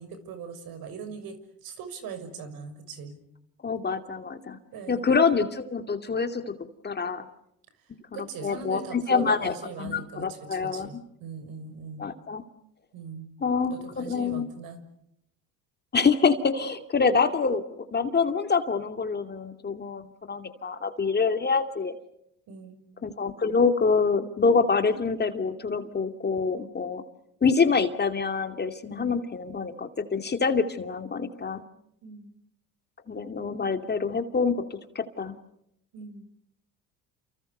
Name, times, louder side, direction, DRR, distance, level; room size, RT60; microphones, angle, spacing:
voice 1, 0.0-3.2 4.7-5.0 8.1-12.1 12.9-13.3 13.7-14.8 22.5-22.9 28.9-29.2 32.0-32.3 33.4-33.6 35.9-36.2, right 5 dB, 65° right, 10 dB, 6.4 m, -40 dB
voice 2, 3.6-4.6 4.9-6.5 6.8-7.3 8.1-11.0 12.0-12.4 13.4-14.5 15.9-22.0 23.0-27.0 27.4-31.6 33.1-35.3, left 5 dB, 25° left, 7 dB, 2.5 m, -26 dB
30.0 x 28.5 x 6.7 m, 0.77 s
supercardioid pair, 100°, 38 cm